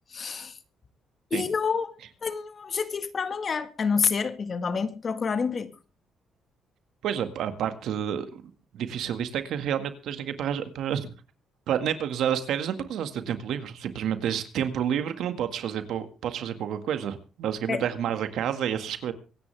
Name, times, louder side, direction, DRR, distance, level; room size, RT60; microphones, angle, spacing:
voice 1, 0.1-0.6 1.3-5.7 17.7-17.8, left 5 dB, 45° left, 1.7 m, -28 dB
voice 2, 7.0-8.4 8.7-11.1 11.7-19.1, right 9 dB, 75° right, 1.9 m, -29 dB
24.5 x 10.0 x 3.4 m
cardioid pair, 90°, 0 cm